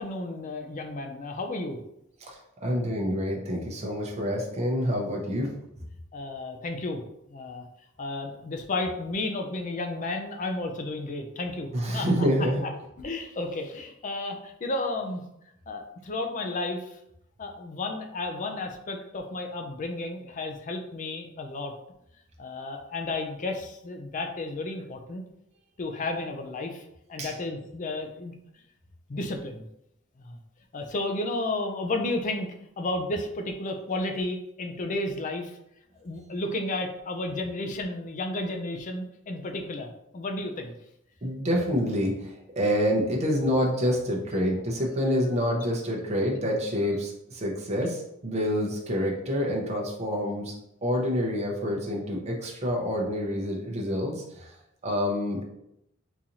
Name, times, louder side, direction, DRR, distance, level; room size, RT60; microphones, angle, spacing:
voice 1, 0.0-1.8 6.1-7.0 7.3-7.6 8.0-12.1 12.6-12.7 13.0-15.2 15.7-17.0 17.4-21.7 22.4-25.2 25.8-28.3 29.1-29.6 30.2-30.4 30.7-35.6 36.0-40.7, left 2 dB, 40° left, 4 dB, 0.4 m, -32 dB
voice 2, 2.2-5.5 11.7-12.6 27.2-27.3 41.2-50.5 50.8-54.4 54.8-55.4, equal, 35° right, -1 dB, 0.7 m, -27 dB
3.9 x 2.6 x 2.9 m, 0.79 s
head